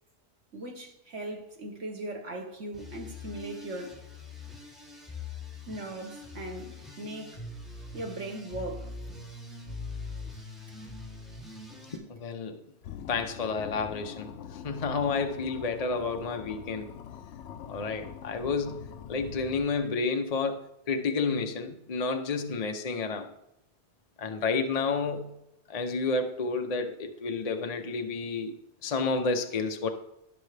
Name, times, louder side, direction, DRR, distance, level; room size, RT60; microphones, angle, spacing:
voice 1, 0.5-4.0 5.7-7.4 7.9-8.9 10.3-10.4 11.3-11.4, right 1 dB, 80° right, 1.9 m, -39 dB
sound 1, 2.7-12.0, left 3 dB, ahead, 2.8 m, -42 dB
voice 2, 11.9-12.6 13.1-16.9 17.7-23.3 24.2-25.3 25.7-29.9, left 4 dB, 40° left, 0.7 m, -30 dB
sound 2, 12.8-20.1, left 8 dB, 75° left, 0.9 m, -44 dB
18.0 x 6.5 x 3.3 m
omnidirectional pair, 1.2 m